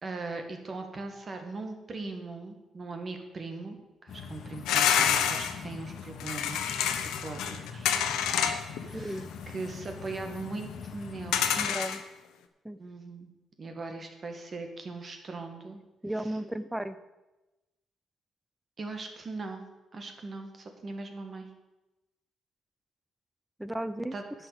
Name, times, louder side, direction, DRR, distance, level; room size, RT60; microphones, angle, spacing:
voice 1, 0.0-8.0 8.2-11.4 12.8-13.3 13.6-15.8 18.8-19.7 19.9-21.5 24.1-24.2, right 3 dB, 40° right, 5 dB, 1.9 m, -40 dB
sound 1, 4.1-11.7, left 6 dB, 70° left, 1.3 m, -43 dB
sound 2, 4.7-5.5 6.2-8.8 9.1-9.2 11.3-12.0, left 9 dB, 90° left, 0.9 m, -27 dB
voice 2, 8.9-9.3 11.6-12.0 12.6-12.8 16.0-17.0 23.6-24.1, right 1 dB, 5° right, 13 dB, 0.7 m, -34 dB
10.0 x 5.8 x 8.2 m, 1.0 s
cardioid pair, 90°, 0 cm